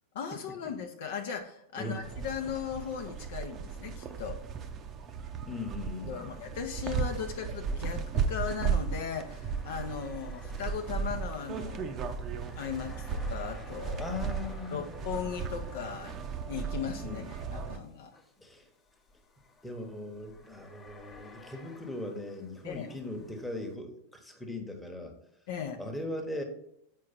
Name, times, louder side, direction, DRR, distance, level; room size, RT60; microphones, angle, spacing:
voice 1, 0.1-4.4 6.0-12.0 12.6-14.2 14.7-16.2 16.5-18.2 22.6-22.9 25.5-25.8, left 7 dB, 55° left, 5 dB, 0.7 m, -37 dB
sound 1, 2.0-17.8, right 6 dB, 30° right, 0.6 m, -35 dB
sound 2, 3.9-5.1 5.4-5.5 6.5-23.8, left 4 dB, 25° left, 0.9 m, -56 dB
voice 2, 5.4-6.3 14.0-14.9 17.0-17.3 18.4-18.7 19.6-25.1 25.8-26.4, left 2 dB, 5° left, 2 dB, 1.1 m, -39 dB
7.5 x 4.7 x 4.2 m, 0.76 s
figure-of-eight pair, 90°, 0 cm